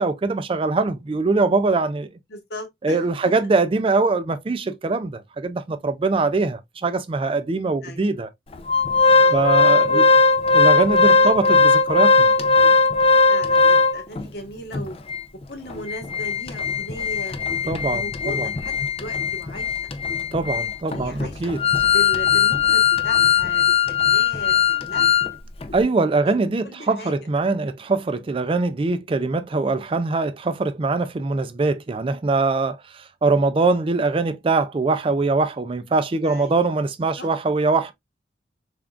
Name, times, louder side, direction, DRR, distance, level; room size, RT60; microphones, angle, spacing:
voice 1, 0.0-2.1 2.8-8.3 9.3-10.0 10.5-12.3 17.7-18.0 18.4-18.5 20.3-21.6 25.7-37.9, right 3 dB, 30° right, 0.4 m, -22 dB
voice 2, 2.3-3.5 7.8-8.2 9.1-9.6 9.9-10.1 11.0-11.6 13.3-15.0 15.5-17.4 17.6-19.9 20.6-21.5 21.9-25.4 25.7-25.8 26.2-26.4 26.6-27.1 36.2-36.8 37.2-37.3, equal, 60° left, 1.1 m, -37 dB
Organ, 8.7-14.2 14.7-14.8 15.1-15.2 15.7-25.3 25.6-25.7, left 4 dB, 30° left, 0.4 m, -18 dB
3.6 x 3.5 x 2.3 m
head